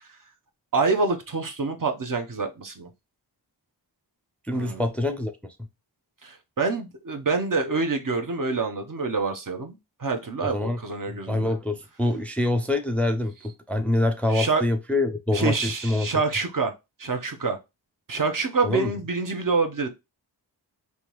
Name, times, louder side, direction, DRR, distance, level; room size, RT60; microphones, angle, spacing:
voice 1, 0.7-2.9 4.5-4.8 6.2-11.5 14.3-14.6 15.3-16.7 17.0-17.6 18.1-19.9, right 4 dB, 45° right, 0.8 m, -26 dB
voice 2, 4.5-5.3 10.4-10.8 11.1-13.3 13.7-16.1 18.6-19.0, left 2 dB, 5° left, 0.5 m, -25 dB
3.5 x 2.7 x 2.9 m
wide cardioid pair, 55°, 44 cm